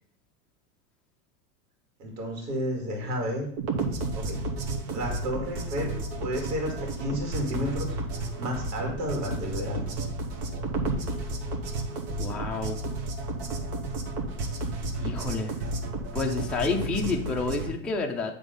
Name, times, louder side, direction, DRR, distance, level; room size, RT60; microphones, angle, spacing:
voice 1, 2.0-3.5 4.1-4.4 4.9-5.9 6.2-7.9 8.4-9.9, equal, 80° right, 1 dB, 2.3 m, -31 dB
sound 1, 3.6-17.7, right 2 dB, 60° right, 1.5 m, -32 dB
voice 2, 12.2-12.8 15.0-15.5 16.1-18.3, left 4 dB, ahead, 0 dB, 0.3 m, -29 dB
8.1 x 3.5 x 5.3 m, 0.65 s
supercardioid pair, 125°, 48 cm